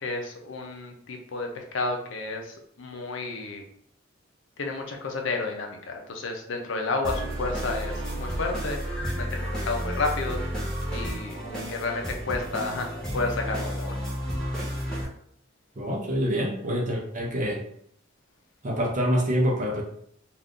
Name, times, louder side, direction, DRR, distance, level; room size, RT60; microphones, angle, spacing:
voice 1, 0.0-3.6 4.6-8.8 9.2-11.4 11.7-12.9 13.1-14.0, left 3 dB, 70° left, 3 dB, 0.5 m, -31 dB
sound 1, 7.0-15.0, equal, 5° left, 0.7 m, -31 dB
voice 2, 15.8-17.6 18.6-19.8, equal, 40° right, -1 dB, 0.6 m, -26 dB
2.5 x 2.4 x 3.5 m, 0.68 s
head